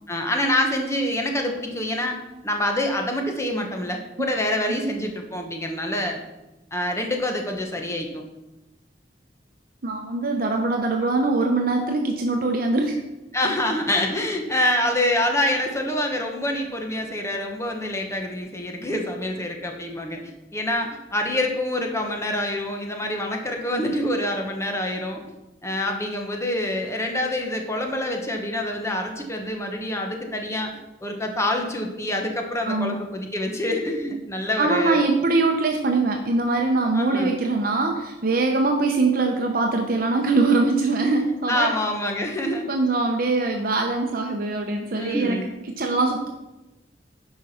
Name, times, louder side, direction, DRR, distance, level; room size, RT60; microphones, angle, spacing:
voice 1, 0.1-2.2 2.4-6.2 6.7-8.2 13.3-25.2 25.6-30.7 31.0-35.1 36.9-37.3 41.1-41.2 41.5-42.7 44.9-45.5, left 1 dB, 15° left, 3 dB, 1.3 m, -26 dB
voice 2, 9.8-13.0 32.7-33.0 34.6-41.7 42.7-45.4 45.7-46.3, right 3 dB, 55° right, 3 dB, 0.8 m, -22 dB
10.5 x 4.8 x 5.7 m, 0.98 s
head